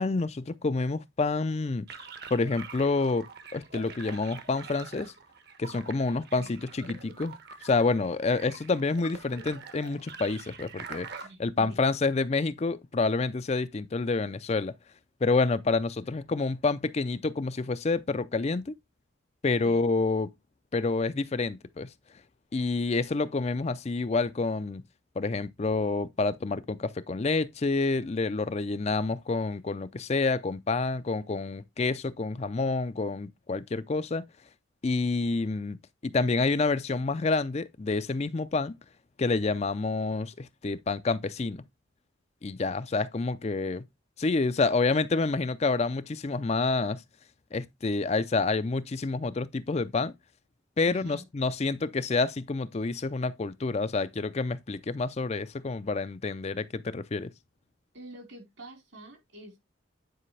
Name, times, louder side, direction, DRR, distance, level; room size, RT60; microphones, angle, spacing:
voice 1, 0.0-1.9 2.3-3.3 3.5-5.1 5.6-7.4 7.6-14.7 15.2-18.7 19.4-20.3 20.7-21.9 22.5-24.8 25.2-34.3 34.8-35.8 36.0-38.8 39.2-41.6 42.4-43.8 44.2-47.0 47.5-50.1 50.8-57.3, left 3 dB, 30° left, 0.4 m, -28 dB
sound 1, 1.9-11.3, right 5 dB, 55° right, 1.2 m, -45 dB
voice 2, 11.2-11.8 19.6-19.8 50.8-51.2 57.9-59.6, right 1 dB, 70° right, 4.2 m, -47 dB
9.9 x 5.0 x 3.2 m
head